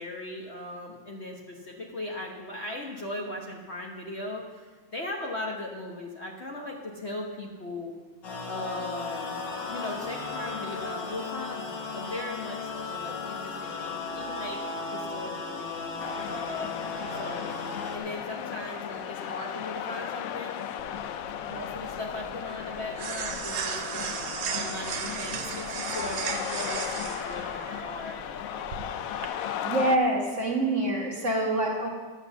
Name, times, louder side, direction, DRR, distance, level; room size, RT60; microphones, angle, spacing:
voice 1, 0.0-7.9 8.5-9.4 9.7-14.6 14.9-16.7 17.1-17.5 17.9-20.6 21.4-28.2, left 1 dB, 40° left, -1 dB, 1.2 m, -38 dB
sound 1, 8.2-18.0, left 4 dB, 70° left, 2.1 m, -35 dB
sound 2, 16.0-30.0, left 9 dB, 90° left, 0.7 m, -36 dB
sound 3, 20.8-29.3, right 6 dB, 75° right, 1.6 m, -36 dB
voice 2, 29.6-31.9, right 2 dB, 40° right, 0 dB, 1.6 m, -26 dB
12.0 x 7.2 x 7.0 m, 1.4 s
omnidirectional pair, 2.1 m